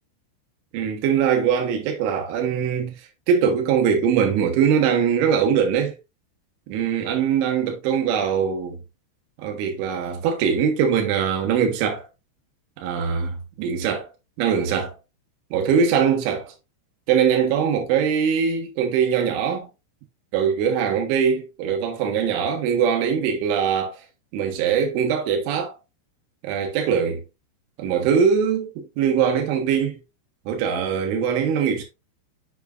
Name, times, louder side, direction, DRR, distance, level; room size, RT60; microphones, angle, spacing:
voice 1, 0.7-2.9 3.3-6.0 6.7-8.8 9.4-12.1 12.8-14.1 14.4-14.9 15.5-16.5 17.1-19.7 20.3-24.0 24.3-25.7 26.4-27.2 27.8-30.0 30.5-31.8, right 7 dB, 75° right, 3.7 m, -22 dB
7.3 x 6.7 x 2.5 m
omnidirectional pair, 5.9 m